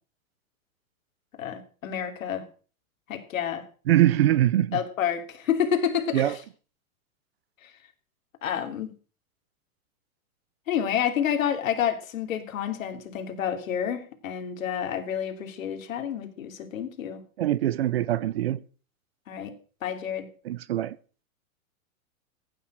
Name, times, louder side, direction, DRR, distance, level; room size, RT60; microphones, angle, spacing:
voice 1, 1.4-2.4 3.1-3.6 4.7-6.3 7.6-7.7 8.4-8.9 10.7-17.2 19.3-19.5 19.8-20.3, left 9 dB, 65° left, 3.1 m, -29 dB
voice 2, 3.9-4.8 6.1-6.4 17.4-18.6 20.4-21.0, right 13 dB, 45° right, 0.6 m, -23 dB
15.5 x 9.2 x 6.3 m
hypercardioid pair, 165°, 43 cm